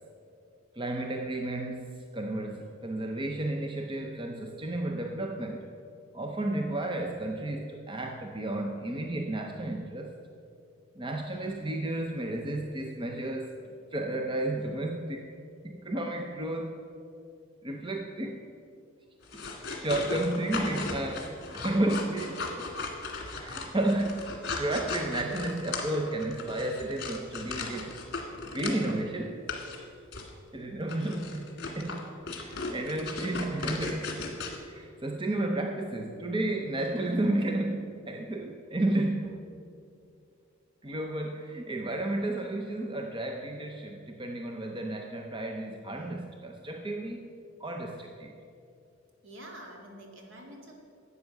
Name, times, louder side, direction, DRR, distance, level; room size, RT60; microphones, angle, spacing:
voice 1, 0.7-5.6 6.1-10.2 11.0-13.6 13.9-15.3 15.6-16.8 17.6-18.4 19.8-22.5 23.2-28.0 28.5-29.4 30.5-32.1 32.4-34.1 34.6-39.4 40.8-47.3 47.6-48.3, right 1 dB, 25° right, 2 dB, 0.7 m, -32 dB
sound 1, 19.2-29.0 29.5-29.8 30.1-30.3 30.9-34.6, left 3 dB, 50° left, 1.9 m, -37 dB
voice 2, 49.2-50.7, right 1 dB, 60° right, 0 dB, 2.2 m, -46 dB
12.0 x 8.4 x 6.5 m, 2.4 s
head